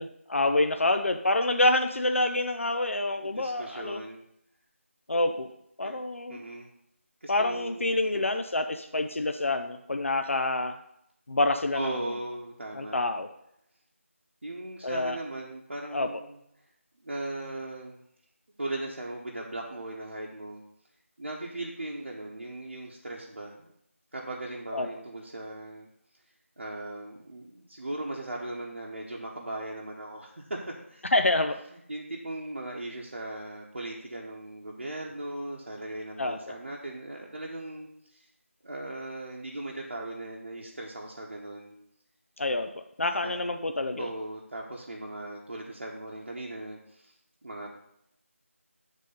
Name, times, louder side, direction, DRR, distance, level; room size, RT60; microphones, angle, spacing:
voice 1, 0.0-4.0 5.1-5.5 5.8-6.4 7.3-10.7 11.3-11.9 12.7-13.3 14.8-15.2 15.9-16.1 24.7-24.9 31.1-31.6 36.2-36.4 42.4-44.1, left 2 dB, 65° left, 6 dB, 0.5 m, -27 dB
voice 2, 3.2-4.2 5.8-6.7 7.2-8.3 11.7-13.1 14.4-16.3 17.0-18.0 18.6-20.6 21.2-23.7 24.1-25.9 26.6-31.1 31.9-38.3 38.6-41.8 43.2-43.3 44.0-47.1 47.4-47.8, right 1 dB, 55° right, -3 dB, 0.9 m, -38 dB
7.4 x 3.7 x 5.2 m, 0.75 s
figure-of-eight pair, 165°, 8 cm